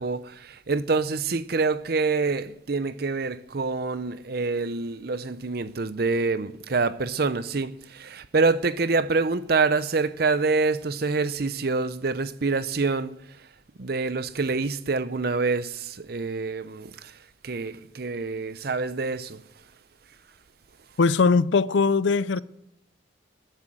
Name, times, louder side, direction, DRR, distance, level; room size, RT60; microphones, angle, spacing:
voice 1, 0.0-13.1 13.8-17.1 17.4-19.4, right 4 dB, 50° right, 0.6 m, -26 dB
voice 2, 21.0-22.4, left 4 dB, 70° left, 0.5 m, -20 dB
13.5 x 9.9 x 7.8 m
head